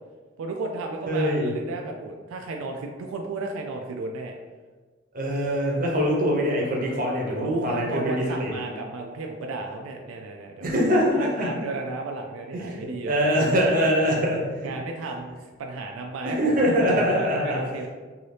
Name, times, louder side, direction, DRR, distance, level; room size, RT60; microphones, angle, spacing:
voice 1, 0.4-4.3 7.4-13.9 14.6-17.9, right 3 dB, 90° right, 2 dB, 0.3 m, -34 dB
voice 2, 1.1-1.5 5.1-8.6 10.6-11.5 12.5-12.8 13.0-14.4 16.2-17.6, equal, 45° right, -2 dB, 0.7 m, -23 dB
2.7 x 2.7 x 3.2 m, 1.4 s
head